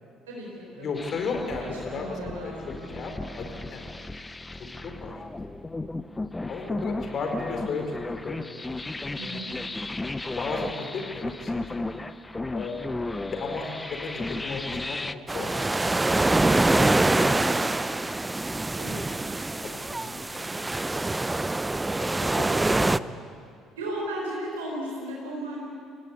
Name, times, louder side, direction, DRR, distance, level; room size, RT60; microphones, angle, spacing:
voice 1, 0.3-0.9 1.9-3.1 4.8-5.0 9.1-9.5 18.8-19.0 23.8-25.6, right 1 dB, 80° right, -4 dB, 4.4 m, -35 dB
voice 2, 0.8-3.8 4.6-5.2 6.5-8.4 9.1-9.4 10.2-11.6 12.5-12.9 13.3-15.1 15.3-15.7 16.3-18.2 19.6-19.8 20.1-21.0 22.0-23.4, left 4 dB, 50° left, 3 dB, 4.4 m, -35 dB
sound 1, 1.0-15.1, left 2 dB, 15° left, 0.8 m, -35 dB
sound 2, 15.3-23.0, right 2 dB, 15° right, 0.6 m, -25 dB
26.5 x 17.5 x 8.4 m, 2.4 s
figure-of-eight pair, 50°, 0 cm